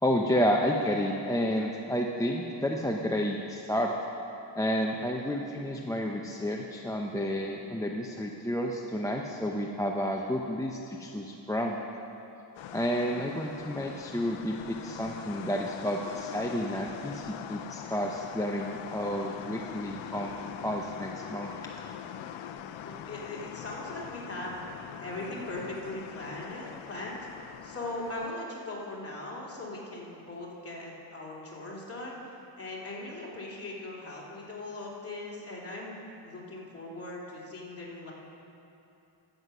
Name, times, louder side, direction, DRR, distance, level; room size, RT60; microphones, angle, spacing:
voice 1, 0.0-3.9 4.6-11.8 12.7-21.5, equal, 5° left, 0 dB, 0.6 m, -30 dB
sound 1, 12.5-28.3, left 9 dB, 85° left, 0.6 m, -43 dB
voice 2, 22.8-24.6 25.0-27.2 27.6-38.1, left 2 dB, 30° left, -4 dB, 2.7 m, -39 dB
13.0 x 7.7 x 5.5 m, 2.8 s
cardioid pair, 90°, 45 cm